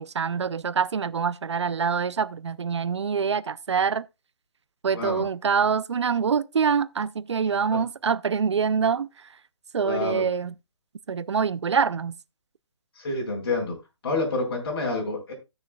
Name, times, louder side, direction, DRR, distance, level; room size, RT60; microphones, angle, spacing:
voice 1, 0.0-4.0 4.8-9.1 9.7-10.5 11.1-12.1, right 6 dB, 80° right, 0.5 m, -25 dB
voice 2, 9.8-10.3 12.9-13.7 14.0-15.3, left 3 dB, 55° left, 4.6 m, -28 dB
17.0 x 6.4 x 2.3 m
hypercardioid pair, 150°, 15 cm